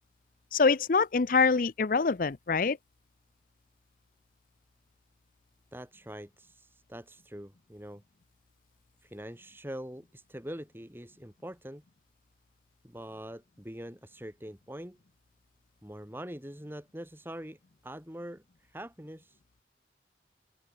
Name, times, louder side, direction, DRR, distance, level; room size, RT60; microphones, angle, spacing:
voice 1, 0.5-2.8, left 4 dB, 50° left, 0.6 m, -25 dB
voice 2, 5.7-8.0 9.0-11.8 12.8-15.0 15.8-19.4, equal, 10° right, 3.6 m, -44 dB
open air
head